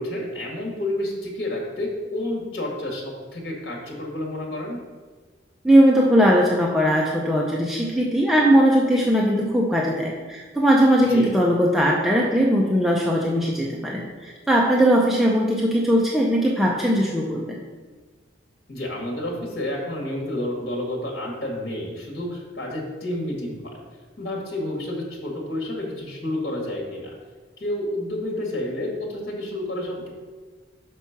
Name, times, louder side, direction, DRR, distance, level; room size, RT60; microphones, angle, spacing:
voice 1, 0.0-4.8 11.1-11.3 18.7-23.6 24.2-27.1 27.6-30.1, left 1 dB, 60° left, -1 dB, 1.7 m, -30 dB
voice 2, 5.6-17.6, equal, ahead, -3 dB, 0.5 m, -19 dB
6.0 x 4.3 x 5.8 m, 1.4 s
head